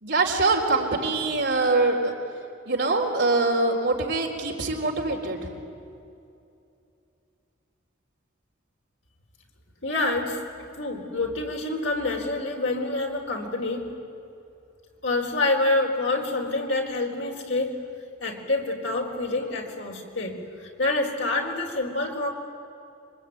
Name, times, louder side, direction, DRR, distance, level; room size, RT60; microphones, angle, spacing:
voice 1, 0.0-2.1 2.7-5.4, right 3 dB, 60° right, 1 dB, 3.9 m, -23 dB
voice 2, 9.8-13.9 15.0-17.8 18.2-22.3, left 2 dB, 65° left, 1 dB, 4.2 m, -27 dB
26.0 x 23.5 x 9.4 m, 2.7 s
head